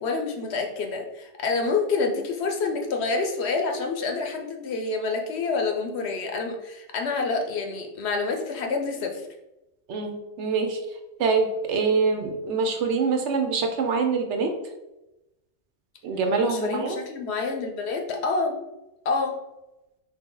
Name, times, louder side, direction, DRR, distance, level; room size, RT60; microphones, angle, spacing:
voice 1, 0.0-9.2 16.4-18.6 19.0-19.3, left 4 dB, 70° left, 3 dB, 0.9 m, -27 dB
voice 2, 9.9-10.8 11.2-14.5 16.0-17.0, right 4 dB, 80° right, 5 dB, 1.0 m, -25 dB
4.5 x 2.9 x 3.8 m, 0.96 s
omnidirectional pair, 1.2 m